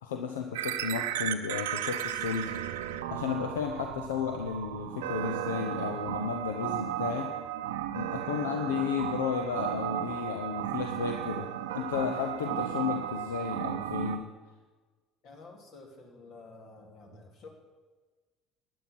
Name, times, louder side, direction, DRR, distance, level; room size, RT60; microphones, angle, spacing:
voice 1, 0.0-2.6 3.1-7.3 7.9-14.3, left 7 dB, 80° left, 5 dB, 0.7 m, -33 dB
sound 1, 0.5-14.2, right 11 dB, 80° right, 0.6 m, -34 dB
voice 2, 15.2-17.5, left 3 dB, 60° left, 2 dB, 2.6 m, -50 dB
12.5 x 9.3 x 5.9 m, 1.3 s
hypercardioid pair, 65°, 0 cm